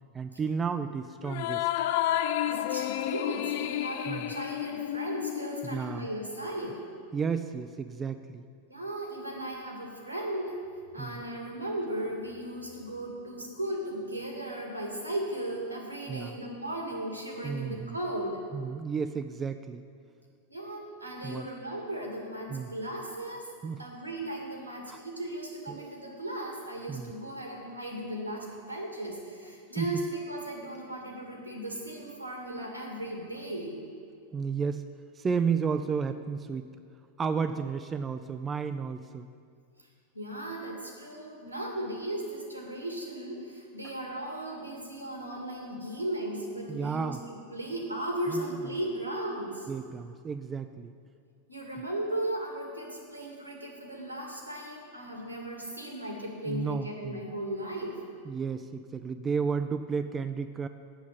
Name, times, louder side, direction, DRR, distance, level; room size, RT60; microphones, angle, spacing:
voice 1, 0.1-1.7 4.1-4.3 5.6-6.1 7.1-8.4 11.0-11.2 16.1-16.4 17.4-18.0 18.5-19.8 21.2-21.5 22.5-22.7 23.6-23.8 24.9-25.0 25.7-25.9 26.9-27.1 29.8-29.9 34.3-34.8 35.2-36.7 37.2-39.3 46.7-47.2 48.3-48.5 49.7-50.9 56.4-57.3 58.2-60.7, right 6 dB, 20° right, 9 dB, 0.4 m, -32 dB
sound 1, 1.2-6.0, left 12 dB, 50° left, 0.4 m, -31 dB
voice 2, 2.4-6.8 8.7-10.5 10.9-18.4 20.5-23.5 23.8-33.8 40.1-47.2 47.5-49.7 51.5-58.0, right 1 dB, 85° right, 0 dB, 2.2 m, -36 dB
8.1 x 7.1 x 8.5 m, 2.3 s
figure-of-eight pair, 90°, 0 cm